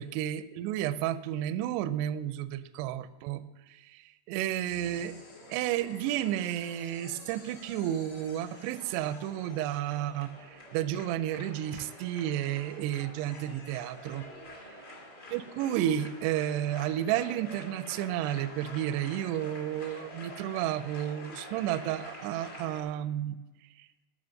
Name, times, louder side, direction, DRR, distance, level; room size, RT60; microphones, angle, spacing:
voice 1, 0.0-5.2 5.5-14.3 15.3-23.4, right 12 dB, 85° right, 13 dB, 2.5 m, -32 dB
sound 1, 4.6-14.6, left 2 dB, 60° left, 6.5 m, -54 dB
sound 2, 4.8-22.8, left 1 dB, 30° left, 2.2 m, -48 dB
14.0 x 5.5 x 6.4 m, 1.2 s
omnidirectional pair, 5.1 m